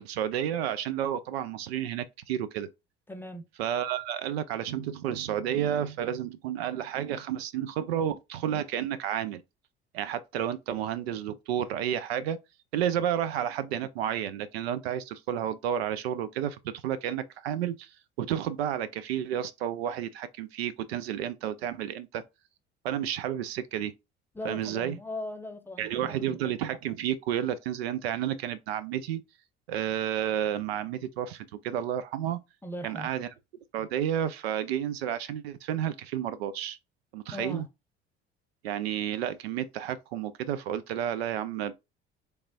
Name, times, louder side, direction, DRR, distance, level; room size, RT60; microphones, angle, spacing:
voice 1, 0.0-2.7 3.6-9.4 9.9-12.4 12.7-17.9 18.2-22.2 22.8-23.9 24.4-25.0 25.8-29.2 29.7-32.4 32.8-33.3 33.7-36.8 37.1-37.7 38.6-41.7, right 10 dB, 70° right, 0.4 m, -31 dB
voice 2, 3.1-3.4 24.3-26.4 32.6-33.1 37.3-37.6, left 1 dB, 5° left, 0.7 m, -39 dB
3.4 x 3.2 x 2.6 m
figure-of-eight pair, 60°, 32 cm